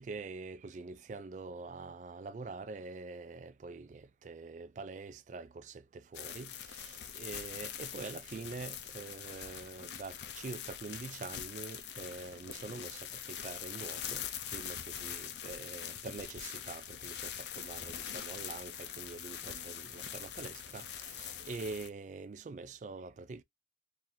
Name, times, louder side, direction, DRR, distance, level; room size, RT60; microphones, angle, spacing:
voice 1, 0.0-13.0 13.3-14.2 14.5-23.4, right 3 dB, 45° right, 0.3 m, -45 dB
sound 1, 6.1-21.9, left 9 dB, 75° left, 0.6 m, -43 dB
2.9 x 2.6 x 3.8 m
head